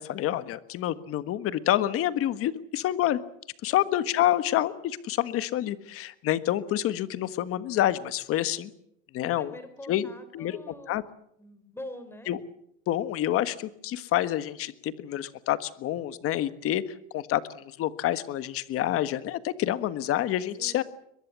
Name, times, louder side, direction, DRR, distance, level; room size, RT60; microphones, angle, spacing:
voice 1, 0.0-3.2 3.6-8.7 9.1-9.5 9.9-10.1 10.3-10.6 10.9-11.0 12.3-12.4 12.9-16.8 17.1-20.8, left 13 dB, 40° left, 14 dB, 1.4 m, -28 dB
voice 2, 9.2-11.0 11.4-12.3 20.6-20.8, left 1 dB, 5° left, 10 dB, 3.8 m, -44 dB
22.5 x 22.0 x 7.4 m, 0.75 s
supercardioid pair, 150°, 35 cm